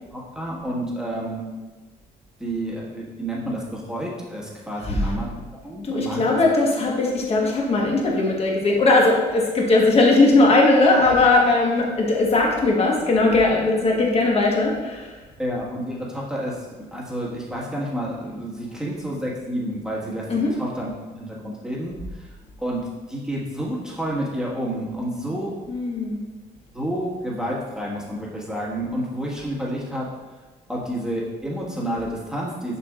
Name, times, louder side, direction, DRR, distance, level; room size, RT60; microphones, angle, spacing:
voice 1, 0.1-1.4 2.4-5.3 5.6-6.4 15.4-20.3 20.6-25.5 26.7-30.1 30.7-32.8, right 1 dB, 5° right, -5 dB, 1.5 m, -30 dB
voice 2, 5.8-15.2 20.3-20.5 25.7-26.3, left 2 dB, 35° left, -1 dB, 1.3 m, -19 dB
6.8 x 6.0 x 2.4 m, 1.2 s
cardioid pair, 110°, 17 cm